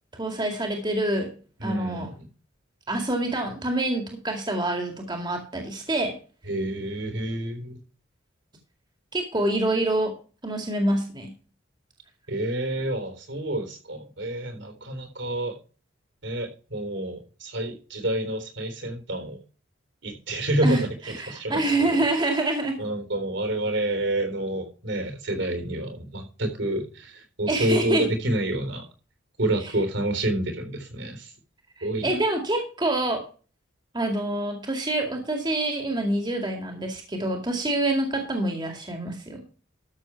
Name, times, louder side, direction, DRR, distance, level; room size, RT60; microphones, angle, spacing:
voice 1, 0.2-1.3 1.6-2.1 2.9-6.2 9.1-10.1 10.4-11.3 20.6-20.8 21.2-22.8 27.5-28.0 31.8-33.2 33.9-39.4, right 2 dB, 20° right, 3 dB, 2.1 m, -26 dB
voice 2, 1.6-2.3 6.5-7.8 12.3-15.6 16.2-19.4 20.0-22.0 22.8-28.9 29.4-31.3 31.8-32.1, right 1 dB, 65° right, 6 dB, 3.8 m, -28 dB
13.0 x 7.1 x 4.6 m, 0.36 s
head